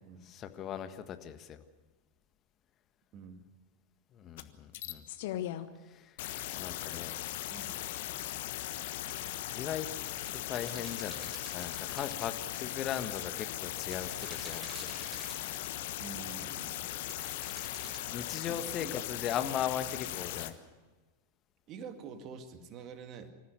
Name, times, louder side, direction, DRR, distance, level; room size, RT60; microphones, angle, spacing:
voice 1, 0.2-1.6 4.1-5.0 5.8-6.2 6.6-7.1 9.5-9.9 10.3-14.9 18.0-20.5, left 9 dB, 30° left, 8 dB, 1.6 m, -38 dB
voice 2, 3.1-3.4 7.5-7.8 16.0-17.0 18.5-19.0 21.7-23.3, right 6 dB, 35° right, 8 dB, 2.1 m, -47 dB
sound 1, 4.4-4.5 4.7-5.7 6.2-20.5, left 14 dB, 50° left, 1.3 m, -38 dB
sound 2, 9.0-9.4 10.2-12.7 13.8-15.9 17.1-18.0, right 1 dB, 15° right, 6.6 m, -48 dB
26.0 x 14.5 x 8.4 m, 1.3 s
figure-of-eight pair, 90°, 0 cm